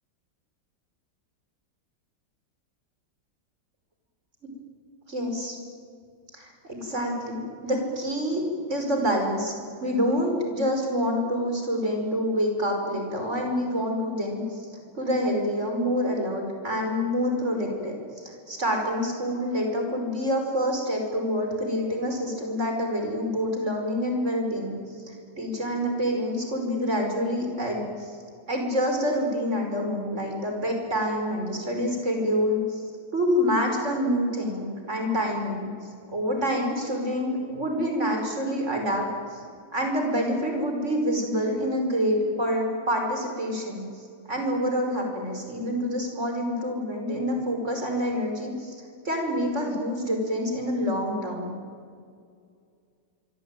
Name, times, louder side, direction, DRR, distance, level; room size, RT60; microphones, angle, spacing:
voice 1, 5.1-5.6 6.3-9.5 9.8-14.6 14.9-24.8 25.4-28.1 28.5-32.8 33.1-35.7 36.1-39.4 39.7-43.8 44.3-51.5, equal, 40° right, 3 dB, 5.8 m, -27 dB
25.0 x 24.0 x 9.2 m, 2.3 s
omnidirectional pair, 2.0 m